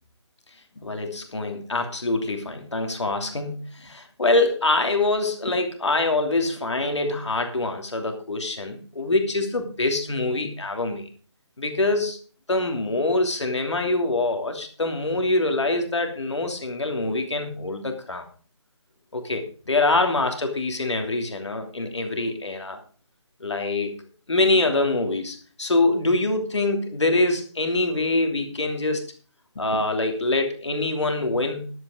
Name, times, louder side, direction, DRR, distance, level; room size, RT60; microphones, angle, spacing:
voice 1, 0.8-11.1 11.6-12.2 12.5-18.2 19.1-22.8 23.4-23.9 24.3-29.0 29.5-31.7, left 2 dB, 70° left, 5 dB, 3.0 m, -24 dB
11.0 x 8.7 x 5.0 m, 0.40 s
figure-of-eight pair, 155°, 15 cm